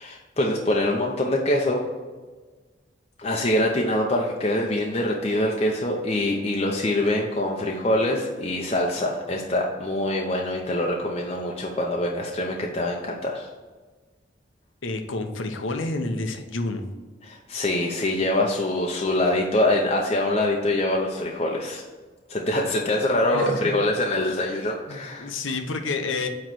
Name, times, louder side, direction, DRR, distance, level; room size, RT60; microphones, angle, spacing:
voice 1, 0.0-1.8 3.2-13.5 17.2-21.8 22.3-25.3, left 1 dB, 30° left, -1 dB, 0.7 m, -24 dB
voice 2, 14.8-16.9 23.3-23.8 24.2-24.4 24.9-26.3, left 3 dB, 85° left, 6 dB, 0.8 m, -29 dB
9.0 x 3.1 x 6.2 m, 1.3 s
head